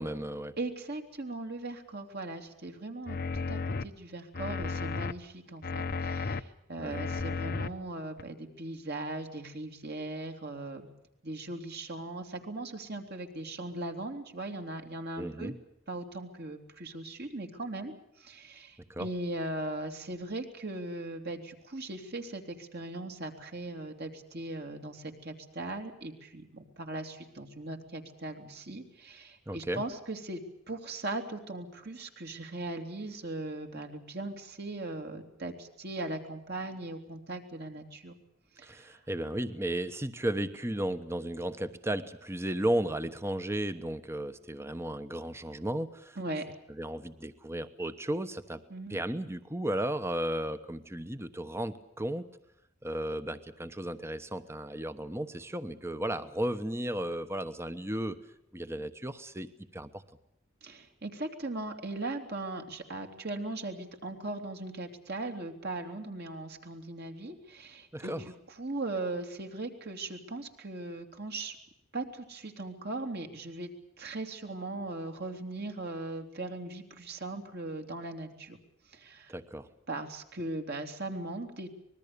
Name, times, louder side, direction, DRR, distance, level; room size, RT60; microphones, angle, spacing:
voice 1, 0.0-0.5 6.8-7.0 15.2-15.6 18.9-19.1 29.5-29.8 38.6-46.2 46.8-48.6 48.9-52.3 52.8-58.2 58.5-60.0 67.9-68.2 79.3-79.7, right 1 dB, 15° right, 11 dB, 1.1 m, -34 dB
voice 2, 0.6-10.9 11.2-15.5 15.9-30.4 30.7-38.2 38.6-39.0 46.2-46.4 48.7-49.0 60.6-71.5 71.9-73.7 74.0-78.6 78.9-79.3 79.9-81.7, right 2 dB, 50° right, 4 dB, 3.1 m, -39 dB
sound 1, 3.1-3.8 4.3-5.1 5.6-6.4 6.9-7.7 8.2-8.3, left 4 dB, 45° left, 0.9 m, -33 dB
25.0 x 21.0 x 6.9 m, 0.82 s
head